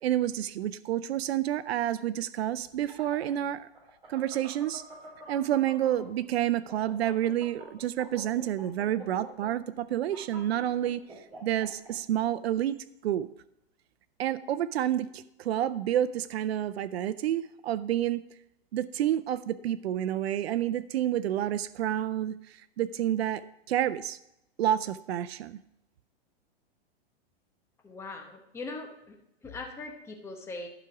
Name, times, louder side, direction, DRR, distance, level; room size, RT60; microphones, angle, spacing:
voice 1, 0.0-3.7 4.1-4.8 5.3-11.0 11.4-12.8 13.0-13.3 14.2-18.2 18.7-24.2 24.6-25.6, right 11 dB, 90° right, 15 dB, 0.5 m, -29 dB
sound 1, 2.6-6.2 6.5-11.9, right 2 dB, 15° right, 3.4 m, -47 dB
voice 2, 27.8-29.2 29.4-30.7, left 3 dB, 10° left, 3 dB, 0.9 m, -40 dB
11.5 x 4.9 x 5.9 m, 0.82 s
supercardioid pair, 155°, 31 cm